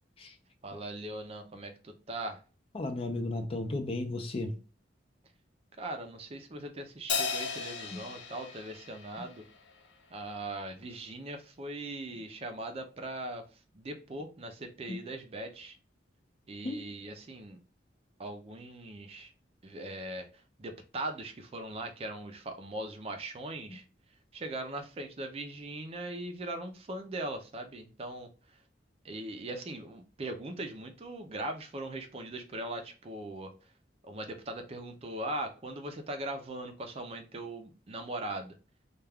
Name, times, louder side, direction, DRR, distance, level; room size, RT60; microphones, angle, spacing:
voice 1, 0.6-2.4 5.8-9.4 10.1-13.4 13.7-15.7 16.5-17.6 18.2-19.3 19.6-20.3 20.6-23.8 24.3-28.3 29.0-33.5 34.0-38.5, right 1 dB, 35° right, 0.5 m, -40 dB
voice 2, 2.8-4.5 14.9-15.0 16.6-16.8, left 2 dB, 30° left, 0.4 m, -33 dB
Crash cymbal, 7.1-9.8, left 5 dB, 85° left, 0.5 m, -36 dB
2.3 x 2.3 x 3.3 m
head